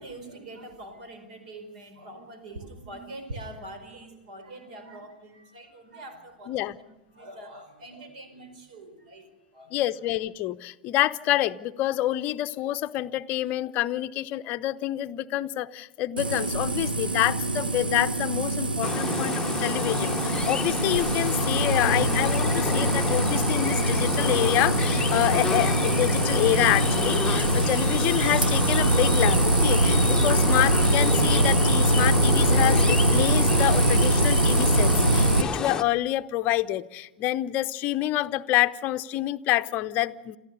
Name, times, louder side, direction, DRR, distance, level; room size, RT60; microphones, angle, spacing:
voice 1, 0.0-6.8 7.1-9.8, right 1 dB, 55° right, 9 dB, 4.8 m, -43 dB
voice 2, 9.7-40.4, left 15 dB, 35° left, 11 dB, 0.7 m, -27 dB
sound 1, 16.2-35.4, right 1 dB, 80° right, 1.0 m, -23 dB
sound 2, 18.8-35.8, left 5 dB, 15° left, 1.0 m, -29 dB
28.0 x 14.5 x 6.7 m, 1.0 s
figure-of-eight pair, 95°, 5 cm